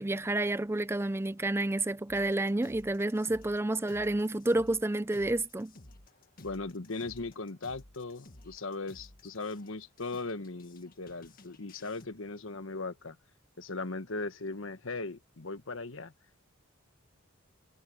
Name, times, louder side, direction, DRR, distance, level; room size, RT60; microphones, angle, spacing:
voice 1, 0.0-5.7, right 2 dB, 10° right, 0.4 m, -30 dB
sound 1, 2.1-12.1, left 2 dB, 45° left, 1.8 m, -55 dB
voice 2, 6.4-13.2 13.6-16.1, left 3 dB, 70° left, 1.3 m, -38 dB
head